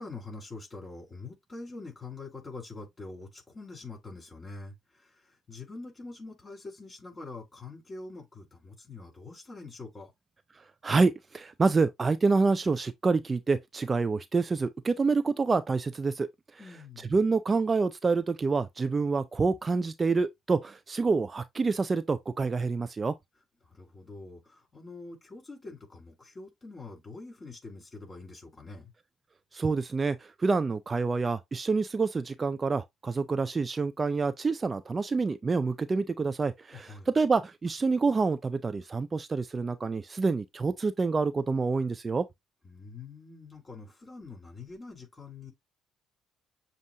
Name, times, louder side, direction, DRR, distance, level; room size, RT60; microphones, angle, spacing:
voice 1, 0.0-10.1 16.6-17.1 23.7-28.9 36.7-37.1 42.6-45.5, left 3 dB, 30° left, 4.0 m, -45 dB
voice 2, 10.8-16.3 17.1-23.1 29.5-42.3, right 4 dB, 30° right, 0.4 m, -27 dB
7.2 x 2.5 x 2.9 m
hypercardioid pair, 50°, 0 cm